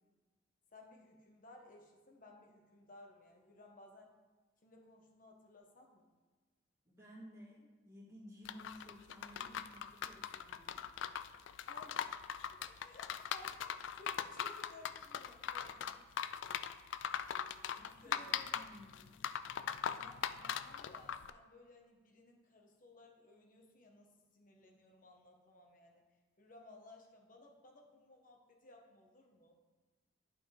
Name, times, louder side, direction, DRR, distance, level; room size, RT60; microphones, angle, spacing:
voice 1, 0.7-4.1 4.6-6.1 11.7-12.1 12.5-16.1 17.6-18.6 19.9-26.0 26.4-29.6, left 2 dB, 45° left, 1 dB, 1.2 m, -59 dB
voice 2, 6.9-10.8 12.6-12.9 17.2-17.3 17.9-19.1, equal, 15° right, -6 dB, 1.9 m, -56 dB
sound 1, 8.5-21.3, left 8 dB, 85° left, 0.3 m, -40 dB
11.0 x 5.0 x 3.4 m, 1.3 s
head